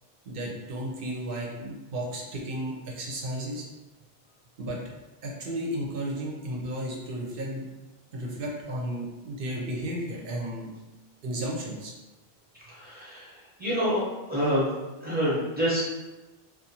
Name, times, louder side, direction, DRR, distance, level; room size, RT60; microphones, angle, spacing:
voice 1, 0.3-3.7 4.6-4.8 5.2-7.6 8.1-10.7 11.2-11.9, right 1 dB, 65° right, -2 dB, 0.8 m, -33 dB
voice 2, 12.7-13.3 13.6-14.7 15.0-15.8, equal, 10° right, -9 dB, 0.8 m, -27 dB
2.4 x 2.2 x 2.8 m, 1.1 s
omnidirectional pair, 1.0 m